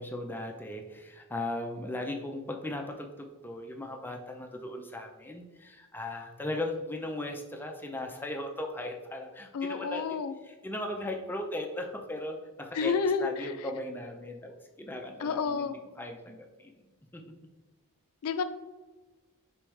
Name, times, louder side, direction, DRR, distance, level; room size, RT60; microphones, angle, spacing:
voice 1, 0.0-10.0 10.4-12.9 13.2-16.7 17.1-17.2, left 1 dB, 10° left, 3 dB, 0.4 m, -37 dB
voice 2, 9.5-10.3 12.7-13.5 15.2-15.8 18.2-18.4, left 5 dB, 75° left, 10 dB, 0.4 m, -30 dB
4.9 x 3.4 x 3.1 m, 1.2 s
head